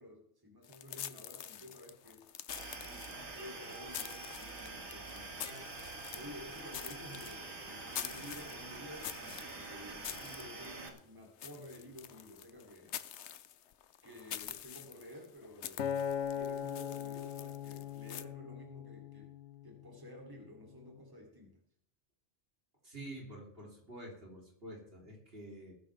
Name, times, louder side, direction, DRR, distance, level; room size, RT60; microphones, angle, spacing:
voice 1, 0.0-2.2 2.8-13.0 14.0-19.3 19.6-21.6, left 1 dB, 20° right, 0 dB, 3.1 m, -52 dB
sound 1, 0.6-18.2, left 10 dB, 75° left, 1.0 m, -47 dB
sound 2, 2.5-10.9, right 2 dB, 70° right, 2.3 m, -46 dB
Acoustic guitar, 15.8-20.1 20.7-21.0, left 8 dB, 90° left, 1.1 m, -40 dB
voice 2, 22.8-25.7, right 1 dB, 55° right, -1 dB, 3.7 m, -48 dB
20.5 x 10.0 x 3.5 m, 0.67 s
omnidirectional pair, 1.2 m